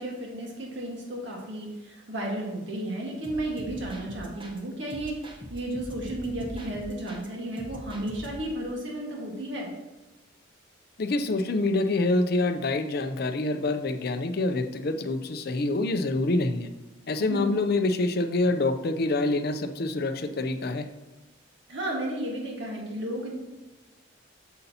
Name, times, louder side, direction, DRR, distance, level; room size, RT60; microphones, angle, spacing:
voice 1, 0.0-9.7 17.2-17.6 21.7-23.3, right 1 dB, 65° right, -1 dB, 1.7 m, -33 dB
sound 1, 3.2-4.6 4.9-7.3 7.6-8.6, equal, 25° right, 0.9 m, -43 dB
voice 2, 11.0-16.7 17.1-20.9, left 2 dB, 50° left, 8 dB, 0.5 m, -26 dB
8.1 x 6.6 x 2.8 m, 1.1 s
head